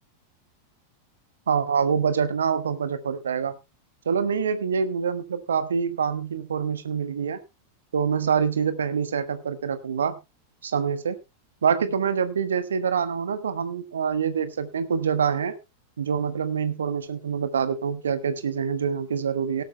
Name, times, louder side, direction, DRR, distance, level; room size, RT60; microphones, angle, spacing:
voice 1, 1.5-3.6 4.0-7.4 7.9-10.2 10.6-11.2 11.6-15.6 16.0-19.6, right 6 dB, 70° right, 12 dB, 1.3 m, -25 dB
18.0 x 12.0 x 2.2 m, 0.25 s
figure-of-eight pair, 90°, 0 cm